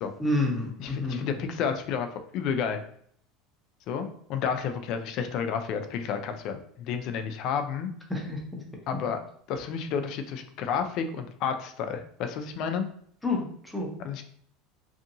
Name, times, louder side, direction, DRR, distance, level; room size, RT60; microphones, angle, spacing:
voice 1, 0.2-1.3 8.1-8.4 13.2-13.9, left 2 dB, 5° left, -1 dB, 0.7 m, -29 dB
voice 2, 0.8-2.8 3.9-7.9 8.9-9.2 9.5-12.9 14.0-14.2, left 7 dB, 50° left, 7 dB, 0.4 m, -31 dB
2.7 x 2.5 x 2.6 m, 0.63 s
supercardioid pair, 140°, 0 cm